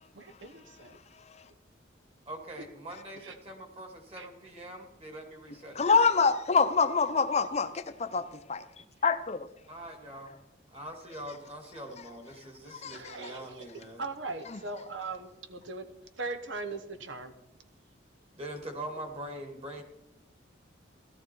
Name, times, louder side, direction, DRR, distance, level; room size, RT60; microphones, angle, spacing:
voice 1, 0.1-1.0 3.2-3.3 4.1-4.3 12.8-13.6 14.0-17.3, right 3 dB, 90° right, 1.2 m, -40 dB
voice 2, 2.3-5.9 9.7-10.4 10.7-14.0 18.4-19.8, right 1 dB, 35° right, 2.4 m, -43 dB
voice 3, 5.7-8.6 9.0-9.5 12.7-13.2, left 5 dB, 35° left, 0.6 m, -26 dB
17.0 x 13.0 x 4.6 m
head